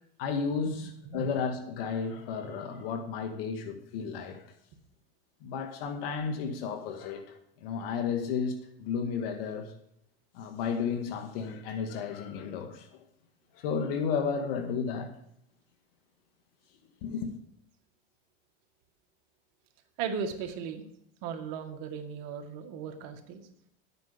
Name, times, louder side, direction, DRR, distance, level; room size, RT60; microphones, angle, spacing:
voice 1, 0.2-4.5 5.4-9.7 10.3-12.9 13.5-15.1 17.0-17.3, left 6 dB, 65° left, 1.9 m, -33 dB
voice 2, 20.0-20.8 21.2-23.4, right 6 dB, 55° right, 2.1 m, -36 dB
12.5 x 9.0 x 5.2 m
supercardioid pair, 120°, 31 cm